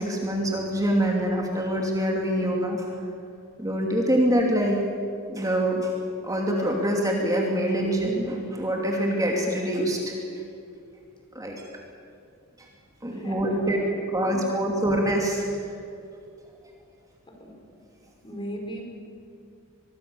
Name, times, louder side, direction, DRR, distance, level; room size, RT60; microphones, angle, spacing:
voice 1, 0.0-2.9 3.6-4.8 5.3-5.9 6.2-10.1 11.3-11.6 13.0-13.8 14.1-15.5, right 1 dB, 15° right, 0 dB, 2.8 m, -25 dB
voice 2, 13.1-13.8 14.2-14.4 17.4-17.5 18.2-18.8, equal, 25° left, 2 dB, 4.7 m, -38 dB
24.5 x 22.0 x 7.1 m, 2.5 s
head